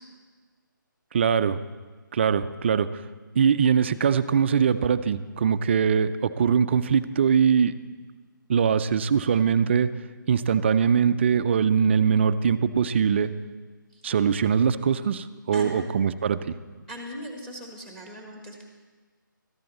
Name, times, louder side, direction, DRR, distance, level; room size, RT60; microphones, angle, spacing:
voice 1, 1.1-1.6 2.1-3.0 3.4-7.7 8.5-9.9 10.3-13.3 14.0-16.5, right 7 dB, 35° right, 12 dB, 0.4 m, -22 dB
voice 2, 15.5-15.8 16.9-18.6, left 1 dB, 5° left, 1 dB, 1.4 m, -39 dB
13.5 x 10.5 x 4.1 m, 1.4 s
figure-of-eight pair, 155°, 11 cm